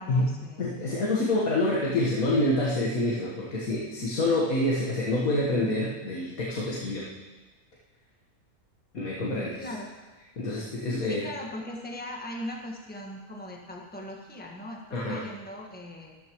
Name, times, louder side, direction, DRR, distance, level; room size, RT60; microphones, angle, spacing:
voice 1, 0.0-0.7 9.6-9.9 11.1-16.2, left 1 dB, 5° left, -1 dB, 1.4 m, -39 dB
voice 2, 0.6-7.1 8.9-9.7 10.4-11.3 14.9-15.2, left 1 dB, 70° left, -4 dB, 1.8 m, -27 dB
14.5 x 13.0 x 3.0 m, 1.3 s
omnidirectional pair, 1.5 m